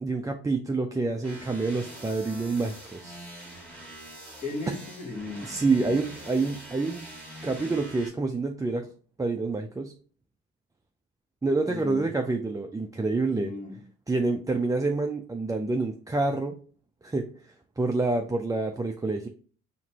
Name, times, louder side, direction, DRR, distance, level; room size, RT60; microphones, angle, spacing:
voice 1, 0.0-3.2 4.7-4.8 5.4-7.1 7.4-8.9 9.2-9.9 11.4-13.5 14.1-16.6 17.0-19.3, right 3 dB, 10° right, 3 dB, 0.4 m, -27 dB
sound 1, 1.2-8.1, right 1 dB, 5° left, 1.6 m, -44 dB
voice 2, 4.4-6.3 11.6-12.1 13.3-13.8, left 3 dB, 25° left, 1 dB, 1.5 m, -37 dB
4.3 x 3.0 x 2.8 m, 0.42 s
cardioid pair, 90°, 30 cm